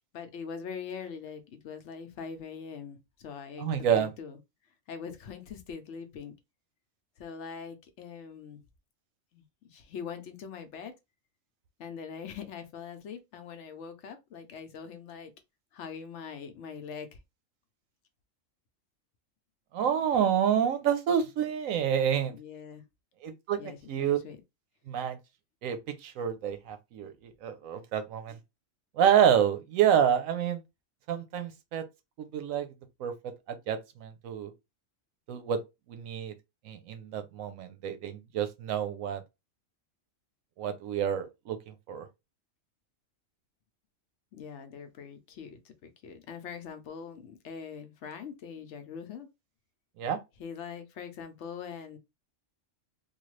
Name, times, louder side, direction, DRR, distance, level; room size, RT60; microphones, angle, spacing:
voice 1, 0.1-4.4 4.9-6.3 7.2-8.6 9.3-9.4 9.7-10.9 11.8-15.3 15.7-17.2 22.3-22.8 23.6-24.4 44.3-49.3 50.4-52.0, left 6 dB, 65° left, 0.9 m, -42 dB
voice 2, 3.6-4.1 19.7-22.4 23.2-23.6 23.9-24.2 24.9-25.2 25.6-28.4 28.9-30.6 31.1-31.8 32.2-32.7 33.0-33.1 33.5-34.5 35.3-35.6 35.9-36.3 36.6-39.2 40.6-42.1 50.0-50.2, right 9 dB, 85° right, 1.0 m, -28 dB
3.1 x 2.3 x 3.1 m
omnidirectional pair, 1.4 m